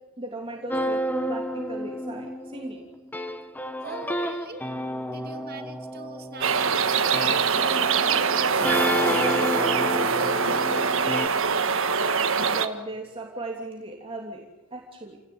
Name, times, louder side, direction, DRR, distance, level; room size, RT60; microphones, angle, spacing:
voice 1, 0.2-2.8 12.3-15.2, right 2 dB, 25° right, 0 dB, 3.1 m, -37 dB
sound 1, 0.7-11.3, equal, 10° left, 1.2 m, -30 dB
voice 2, 3.8-4.6 5.1-9.6 9.9-11.5, right 2 dB, 45° right, 5 dB, 2.9 m, -40 dB
sound 2, 6.4-12.7, right 5 dB, 65° right, 1.6 m, -23 dB
29.5 x 18.5 x 9.6 m, 1.1 s
head